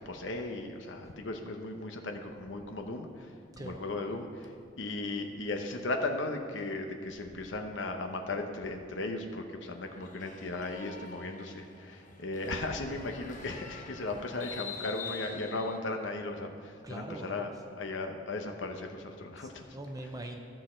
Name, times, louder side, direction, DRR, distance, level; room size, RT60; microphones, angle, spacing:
voice 1, 0.0-3.3 3.6-4.5 4.8-17.5 17.8-19.6, left 2 dB, 85° left, 4 dB, 0.8 m, -36 dB
voice 2, 3.5-3.8 16.8-17.5 19.4-20.4, right 1 dB, 20° right, 3 dB, 0.6 m, -42 dB
sound 1, 9.7-15.8, left 6 dB, 45° left, 0.8 m, -46 dB
14.0 x 6.4 x 4.4 m, 2.2 s
head